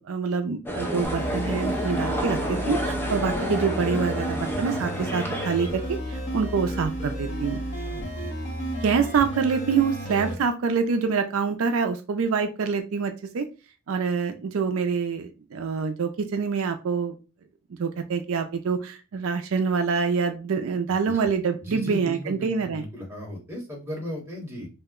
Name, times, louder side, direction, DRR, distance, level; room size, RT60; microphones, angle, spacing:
voice 1, 0.0-7.6 8.8-13.5 13.9-17.1 17.8-22.8, right 5 dB, 70° right, 6 dB, 0.4 m, -26 dB
sound 1, 0.7-5.9, equal, 10° left, 0.4 m, -30 dB
sound 2, 1.0-10.3, right 1 dB, 30° left, 0.8 m, -32 dB
voice 2, 8.0-8.3 21.0-21.3 21.6-24.7, equal, 10° right, -3 dB, 0.9 m, -36 dB
2.8 x 2.1 x 3.5 m, 0.31 s
head